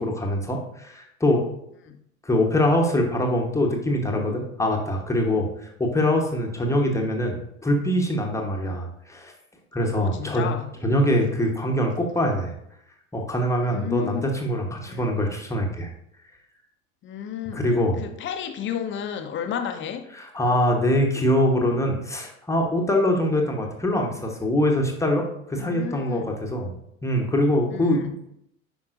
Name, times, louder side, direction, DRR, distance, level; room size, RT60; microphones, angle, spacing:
voice 1, 0.0-1.4 2.2-9.3 9.7-10.5 10.8-12.5 13.1-15.9 17.5-18.0 20.2-26.7 27.0-28.1, left 1 dB, 5° left, 0 dB, 1.1 m, -23 dB
voice 2, 9.8-10.7 13.6-14.3 14.9-15.1 17.0-17.7 18.0-20.1 25.5-26.4 27.7-28.2, left 8 dB, 30° left, 7 dB, 0.8 m, -33 dB
9.7 x 5.3 x 2.6 m, 0.76 s
figure-of-eight pair, 75°, 42 cm